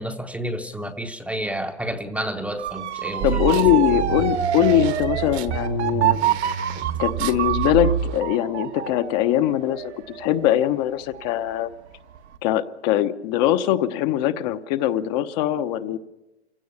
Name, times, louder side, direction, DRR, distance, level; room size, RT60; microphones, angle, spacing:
voice 1, 0.0-3.6, right 1 dB, 5° right, 6 dB, 0.9 m, -30 dB
Motor vehicle (road) / Siren, 2.6-11.5 11.9-12.4, right 11 dB, 80° right, 1.7 m, -27 dB
voice 2, 3.2-6.2 7.0-11.7 12.4-16.0, left 12 dB, 40° left, 9 dB, 1.0 m, -22 dB
sound 1, 3.2-8.2, right 9 dB, 40° right, 1.2 m, -28 dB
27.0 x 16.5 x 7.0 m, 1.0 s
hypercardioid pair, 135°, 33 cm